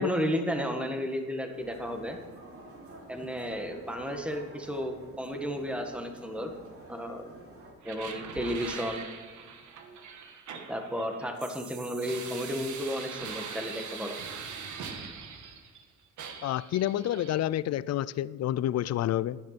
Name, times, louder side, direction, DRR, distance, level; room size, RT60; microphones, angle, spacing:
voice 1, 0.0-2.2 3.1-6.5 6.9-7.3 7.8-9.0 10.7-14.2, equal, 5° right, 1.7 m, -33 dB
sound 1, 1.5-7.7, right 1 dB, 45° right, 3.6 m, -50 dB
sound 2, 7.8-15.8 16.2-17.4, right 6 dB, 75° right, 1.5 m, -42 dB
voice 2, 16.4-19.4, left 12 dB, 60° left, 0.5 m, -29 dB
14.0 x 11.0 x 4.2 m
cardioid pair, 90°, 30 cm